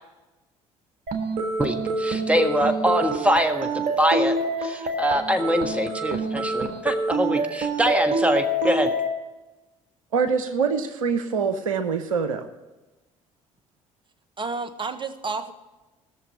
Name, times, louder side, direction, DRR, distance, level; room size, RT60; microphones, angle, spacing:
sound 1, 1.1-9.1, right 2 dB, 55° right, 1.6 m, -26 dB
voice 1, 1.6-4.3 4.6-8.9, equal, 10° right, 5 dB, 1.5 m, -24 dB
voice 2, 10.1-12.5, right 5 dB, 85° right, 9 dB, 0.7 m, -24 dB
voice 3, 14.4-15.5, right 4 dB, 30° right, 11 dB, 1.3 m, -30 dB
17.5 x 6.9 x 5.9 m, 1.1 s
hypercardioid pair, 55°, 17 cm